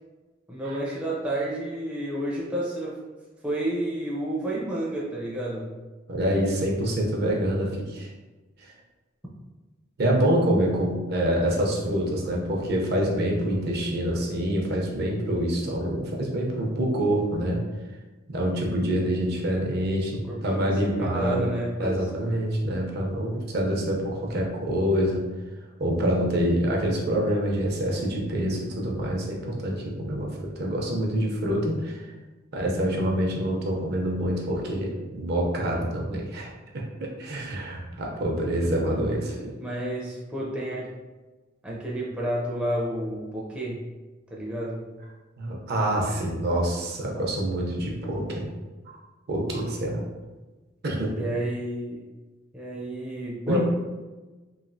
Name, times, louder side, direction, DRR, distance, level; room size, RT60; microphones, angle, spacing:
voice 1, 0.5-3.0 3.4-5.7 20.3-22.1 38.9-39.0 39.6-40.9 41.6-43.8 44.3-44.8 51.2-52.0 52.5-53.6, right 1 dB, 5° right, -5 dB, 0.4 m, -30 dB
voice 2, 6.1-8.1 8.6-8.7 10.0-17.6 18.3-21.5 21.8-25.2 25.8-32.1 32.5-39.5 45.4-48.5 49.3-50.0 50.8-51.2 53.5-53.6, right 1 dB, 55° right, -1 dB, 0.5 m, -26 dB
3.1 x 2.3 x 2.5 m, 1.2 s
head